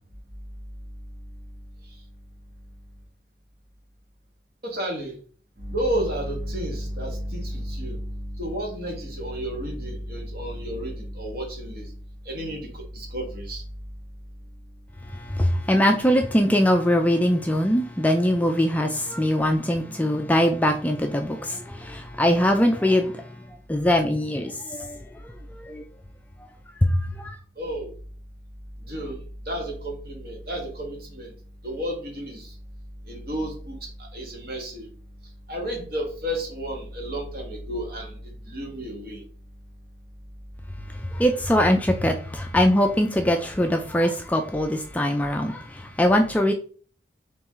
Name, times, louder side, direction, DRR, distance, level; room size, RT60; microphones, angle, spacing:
voice 1, 4.6-5.2 5.6-11.9 12.2-13.6 27.6-27.9 28.9-31.3 31.6-32.5 33.1-34.9 35.5-39.2, equal, 55° right, 1.5 m, -31 dB
voice 2, 15.1-23.2 23.7-25.0 25.6-25.8 26.8-27.4 41.1-46.5, equal, 10° left, 0.3 m, -22 dB
4.6 x 3.1 x 3.6 m
head